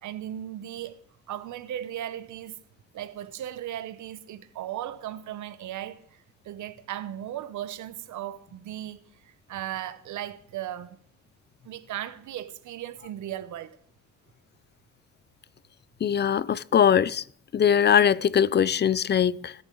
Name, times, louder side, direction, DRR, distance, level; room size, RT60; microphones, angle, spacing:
voice 1, 0.0-2.6 2.9-11.0 11.6-13.8, right 12 dB, 75° right, 0.9 m, -37 dB
voice 2, 16.0-17.2 17.5-19.5, left 8 dB, 35° left, 0.5 m, -21 dB
21.0 x 10.0 x 3.9 m
cardioid pair, 90°, 30 cm